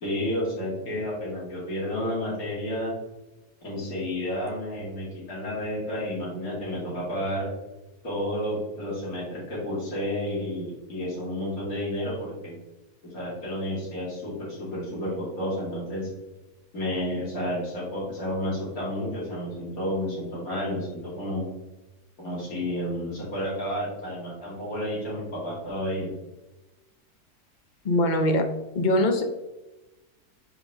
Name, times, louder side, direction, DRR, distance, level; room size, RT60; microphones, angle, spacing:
voice 1, 0.0-2.9 3.6-7.5 8.0-12.6 13.1-16.1 16.7-21.5 22.2-26.1, left 1 dB, 65° left, -6 dB, 3.0 m, -31 dB
voice 2, 27.8-28.5 28.7-29.2, left 1 dB, 45° left, 5 dB, 0.6 m, -22 dB
8.9 x 3.4 x 3.6 m, 1.1 s
omnidirectional pair, 1.6 m